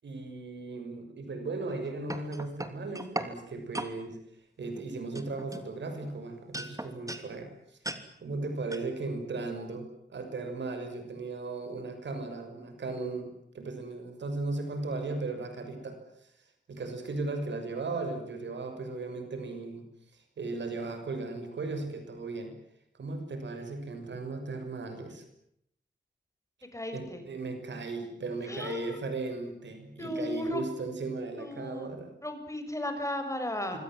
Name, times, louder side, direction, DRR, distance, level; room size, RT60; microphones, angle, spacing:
voice 1, 0.0-4.2 4.6-7.8 8.2-13.3 13.5-16.3 16.7-19.9 20.1-22.5 23.0-25.2 26.9-32.1 33.7-33.8, right 3 dB, 90° right, 7 dB, 6.5 m, -36 dB
sound 1, 1.7-3.3 3.7-3.9 4.6-4.8 5.2-6.1 6.5-7.3 7.8-8.0 8.7-8.9, right 1 dB, 20° right, 3.0 m, -37 dB
voice 2, 26.7-27.2 28.5-29.0 30.0-30.6 31.4-31.9 32.2-33.8, left 1 dB, 15° left, 7 dB, 6.6 m, -35 dB
26.0 x 24.0 x 7.7 m, 0.75 s
wide cardioid pair, 95°, 18 cm